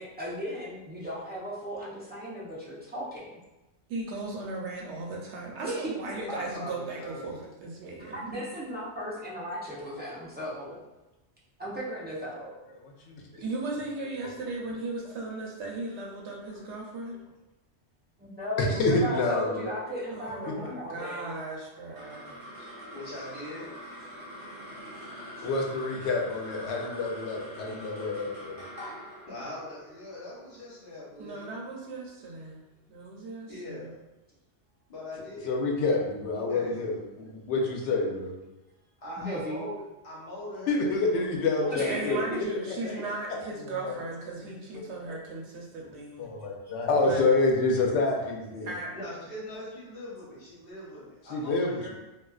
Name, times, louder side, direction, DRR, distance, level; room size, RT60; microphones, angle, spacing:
voice 1, 0.0-3.4 5.6-6.3 8.0-10.8 11.6-12.5 18.2-21.4 24.8-24.9 25.4-25.5 39.2-39.7 41.7-42.5, equal, 15° right, -9 dB, 0.4 m, -36 dB
voice 2, 3.9-8.3 13.3-17.2 20.1-22.3 31.2-32.6 32.9-33.9 41.9-46.3 47.0-47.3 48.7-48.9, right 3 dB, 80° right, -1 dB, 0.9 m, -37 dB
voice 3, 6.3-7.3 22.9-23.7 29.3-31.6 33.5-34.0 34.9-35.5 36.3-36.7 39.0-39.7 40.0-41.3 41.6-42.5 42.8-43.0 48.6-48.7 48.9-51.9, left 1 dB, 55° left, -8 dB, 1.1 m, -41 dB
voice 4, 18.8-19.7 25.4-28.5 35.5-38.4 40.7-42.2 43.7-44.0 45.1-45.2 46.2-48.7 51.3-51.9, left 3 dB, 80° left, 0 dB, 0.9 m, -27 dB
sound 1, 21.7-32.3, equal, 55° right, 0.9 m, -45 dB
2.4 x 2.3 x 2.3 m, 1.0 s
omnidirectional pair, 1.2 m